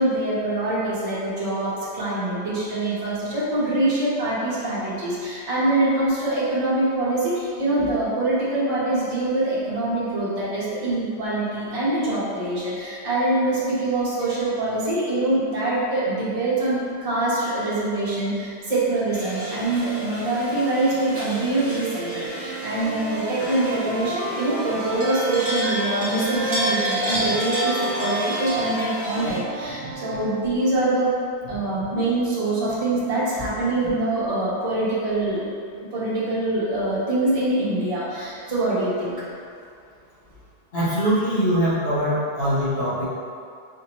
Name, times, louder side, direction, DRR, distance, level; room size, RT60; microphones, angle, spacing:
voice 1, 0.0-31.1 31.5-35.4 35.8-39.1, right 2 dB, 30° right, -10 dB, 1.1 m, -24 dB
sound 1, 19.1-29.4, right 1 dB, 15° right, 0.7 m, -30 dB
Wind instrument woodwind instrument, 22.3-25.9 26.2-30.4, right 2 dB, 60° right, 0.6 m, -33 dB
voice 2, 40.7-43.0, equal, 60° left, -10 dB, 1.5 m, -22 dB
5.3 x 2.9 x 3.0 m, 2.4 s
omnidirectional pair, 1.2 m